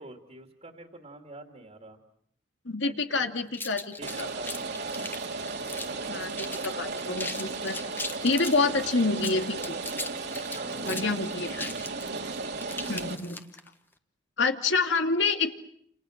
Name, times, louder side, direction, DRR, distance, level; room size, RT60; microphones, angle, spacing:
voice 1, 0.0-2.0 2.8-3.3 4.0-5.0 8.7-8.9 10.5-11.3 12.4-12.9, right 2 dB, 35° right, 3 dB, 2.7 m, -47 dB
voice 2, 2.6-4.3 6.1-7.8 8.2-9.6 10.9-11.7 12.9-13.4 14.4-15.5, left 3 dB, 65° left, 5 dB, 2.5 m, -27 dB
sound 1, 3.5-6.1 6.4-6.7 7.0-8.6 9.1-13.7, left 2 dB, 10° left, 1.4 m, -38 dB
Rain, 4.0-13.2, right 3 dB, 60° right, 2.6 m, -35 dB
29.5 x 28.5 x 6.6 m, 0.70 s
head